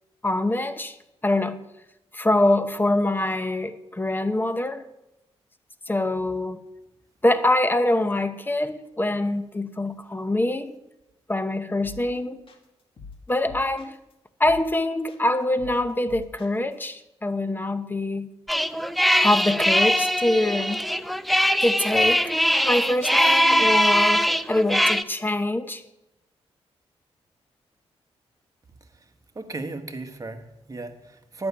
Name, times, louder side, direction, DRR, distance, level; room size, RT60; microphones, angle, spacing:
voice 1, 0.2-1.0 1.2-1.6 2.1-4.8 5.9-6.6 7.2-10.8 11.3-12.4 13.3-13.9 14.4-18.3 19.2-20.8 21.6-22.3 22.6-25.8, left 1 dB, 20° left, 10 dB, 0.9 m, -24 dB
sound 1, 11.8-12.2 12.5-14.1 14.4-14.8 15.1-16.9, left 5 dB, 55° left, 2.2 m, -44 dB
sound 2, 18.5-25.0, equal, ahead, 0.6 m, -21 dB
voice 2, 29.3-31.5, right 2 dB, 30° right, 6 dB, 1.5 m, -35 dB
10.5 x 7.1 x 9.5 m, 0.89 s
cardioid pair, 80°, 11 cm